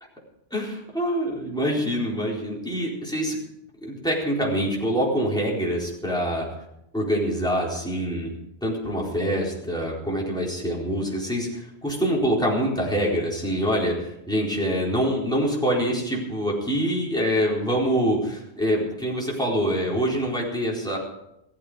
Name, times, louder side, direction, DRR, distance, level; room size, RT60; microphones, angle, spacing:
voice 1, 0.5-3.4 3.8-6.5 6.9-8.3 8.6-21.0, equal, 5° left, -4 dB, 4.2 m, -25 dB
16.0 x 14.5 x 5.1 m, 0.81 s
omnidirectional pair, 1.2 m